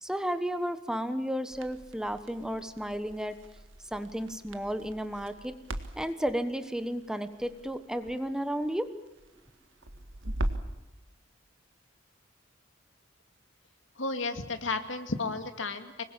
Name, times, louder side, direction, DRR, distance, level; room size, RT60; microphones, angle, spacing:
voice 1, 0.0-3.4 3.9-5.6 6.0-9.0, equal, 5° right, 10 dB, 1.2 m, -33 dB
Crackle, 1.5-10.8, right 1 dB, 90° right, 1.8 m, -40 dB
voice 2, 14.0-16.0, left 3 dB, 80° left, 7 dB, 2.3 m, -33 dB
25.5 x 21.5 x 7.4 m, 1.0 s
head